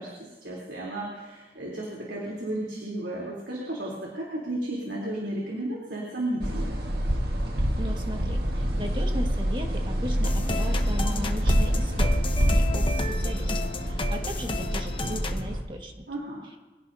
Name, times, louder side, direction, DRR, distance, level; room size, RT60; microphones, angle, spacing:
voice 1, 0.0-6.7 16.1-16.5, right 1 dB, 80° right, -4 dB, 3.5 m, -33 dB
sound 1, 6.4-15.6, equal, 60° right, 1.7 m, -26 dB
voice 2, 7.8-16.0 16.4-16.6, equal, 30° right, 2 dB, 1.7 m, -37 dB
sound 2, 10.2-15.4, left 3 dB, 30° left, 0.9 m, -33 dB
24.5 x 16.0 x 2.8 m, 1.2 s
head